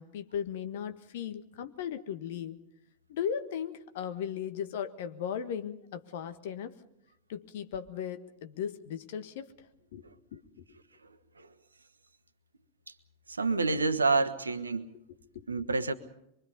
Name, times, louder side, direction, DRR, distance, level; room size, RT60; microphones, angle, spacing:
voice 1, 0.0-2.6 3.1-6.8 7.3-9.5 9.9-10.0 10.3-10.6 14.9-15.0 15.3-15.5, left 8 dB, 55° left, 1.6 m, -37 dB
voice 2, 13.3-14.9 15.5-15.9, right 3 dB, 75° right, 1.3 m, -28 dB
24.5 x 23.5 x 5.5 m
figure-of-eight pair, 90°, 0 cm